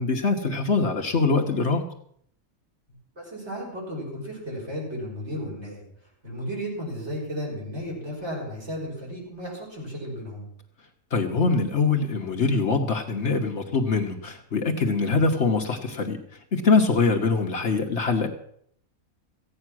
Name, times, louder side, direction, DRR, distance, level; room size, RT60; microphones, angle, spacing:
voice 1, 0.0-1.8 11.1-16.2 16.5-18.3, left 4 dB, 55° left, 3 dB, 1.4 m, -23 dB
voice 2, 3.2-5.8 6.2-10.5, equal, 50° right, -3 dB, 5.8 m, -34 dB
15.0 x 9.5 x 6.2 m, 0.66 s
omnidirectional pair, 1.5 m